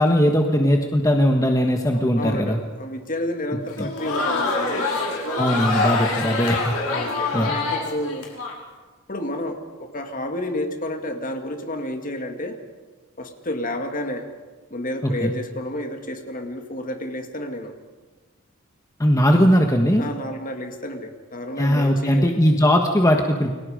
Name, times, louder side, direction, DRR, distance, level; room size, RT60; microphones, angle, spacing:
voice 1, 0.0-2.6 3.8-3.9 5.3-6.8 7.3-7.5 15.0-15.3 19.0-20.1 21.6-23.6, equal, 15° left, 2 dB, 1.4 m, -19 dB
voice 2, 1.9-4.9 6.5-8.3 9.1-12.6 13.2-14.3 14.7-17.7 20.0-22.3, left 1 dB, 40° left, 5 dB, 2.3 m, -30 dB
Crowd, 3.7-8.5, left 3 dB, 90° left, 5.3 m, -25 dB
29.5 x 23.0 x 5.1 m, 1.3 s
head